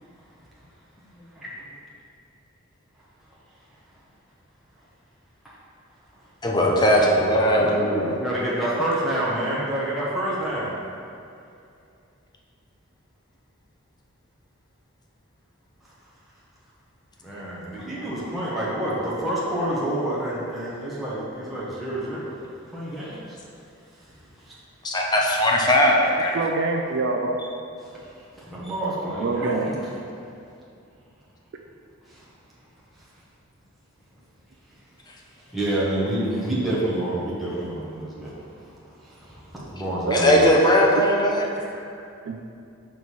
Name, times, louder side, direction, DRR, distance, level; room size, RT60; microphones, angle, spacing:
voice 1, 6.4-8.2 24.8-26.4 40.1-41.5, equal, 20° left, -1 dB, 0.6 m, -19 dB
voice 2, 7.4-10.8 17.2-22.4 22.7-23.4 24.4-24.5 27.9-28.1 28.5-29.9 32.1-32.2 35.5-38.4 39.0-40.4 41.7-41.8, right 1 dB, ahead, -9 dB, 0.9 m, -28 dB
voice 3, 26.3-27.4 29.2-29.7 40.1-40.5 42.3-42.4, right 3 dB, 60° right, 3 dB, 0.4 m, -25 dB
6.2 x 3.1 x 5.4 m, 2.5 s
head